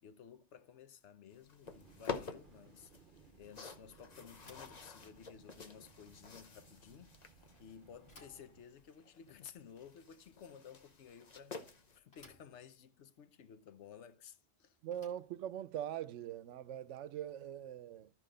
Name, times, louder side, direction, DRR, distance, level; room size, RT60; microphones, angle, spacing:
voice 1, 0.0-14.8, left 8 dB, 75° left, 1.0 m, -55 dB
sound 1, 1.3-12.0, left 4 dB, 40° left, 1.0 m, -50 dB
sound 2, 1.6-8.6, right 5 dB, 50° right, 1.1 m, -63 dB
Bicycle / Thump thud, 4.4-17.4, left 2 dB, 60° left, 2.6 m, -67 dB
voice 2, 14.8-18.1, right 11 dB, 85° right, 0.9 m, -42 dB
13.5 x 4.8 x 3.8 m
omnidirectional pair, 1.2 m